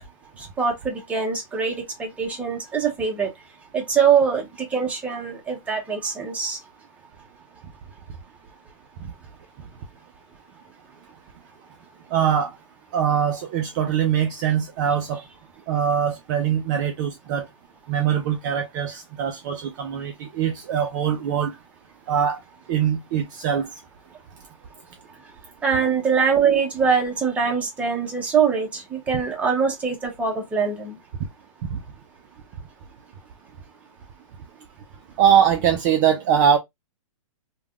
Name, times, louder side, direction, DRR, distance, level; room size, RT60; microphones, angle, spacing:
voice 1, 0.4-3.3 3.7-4.4 4.7-6.6 25.6-31.0, right 6 dB, 10° right, 0.7 m, -23 dB
voice 2, 12.1-12.5 12.9-15.2 15.7-17.5 17.9-21.5 22.1-22.4 22.7-23.7 31.7-31.8 35.2-36.6, right 8 dB, 35° right, 0.4 m, -22 dB
3.4 x 2.2 x 2.3 m
hypercardioid pair, 140°, 17 cm